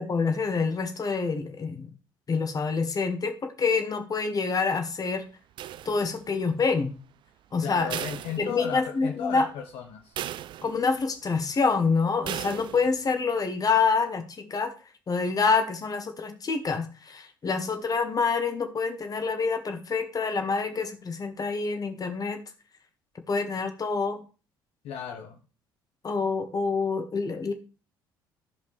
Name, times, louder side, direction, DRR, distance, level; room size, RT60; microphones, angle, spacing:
voice 1, 0.0-1.9 2.3-5.3 5.8-7.0 7.5-7.9 8.4-9.5 10.6-14.7 15.1-22.4 23.3-24.2 26.0-27.5, left 4 dB, 30° left, 7 dB, 1.5 m, -27 dB
sound 1, 5.6-6.4 7.9-9.0 9.4-9.5 10.2-11.0 12.2-13.0, right 12 dB, 45° right, 0.3 m, -37 dB
voice 2, 7.6-10.2 24.8-25.4, left 8 dB, 55° left, 3 dB, 1.0 m, -35 dB
15.0 x 5.2 x 3.2 m, 0.35 s
figure-of-eight pair, 55°, 12 cm